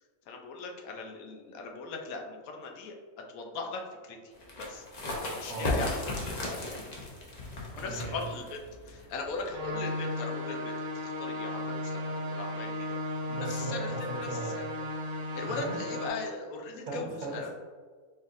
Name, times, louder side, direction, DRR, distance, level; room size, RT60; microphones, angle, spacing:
voice 1, 0.3-2.9 3.3-4.2 4.6-4.8 5.3-6.0 6.3-6.9 7.8-8.6 8.9-12.9 13.3-13.9 14.3-14.7 15.4-17.5, left 3 dB, 80° left, 2 dB, 1.0 m, -39 dB
sound 1, 4.4-9.7, left 2 dB, 40° left, 0.6 m, -36 dB
voice 2, 5.4-5.7 7.8-8.2 13.3-14.6 15.4-15.8 16.9-17.5, right 3 dB, 85° right, -3 dB, 1.3 m, -38 dB
sound 2, 9.5-16.1, left 1 dB, 65° right, 0.9 m, -35 dB
4.2 x 3.5 x 2.5 m, 1.5 s
omnidirectional pair, 1.5 m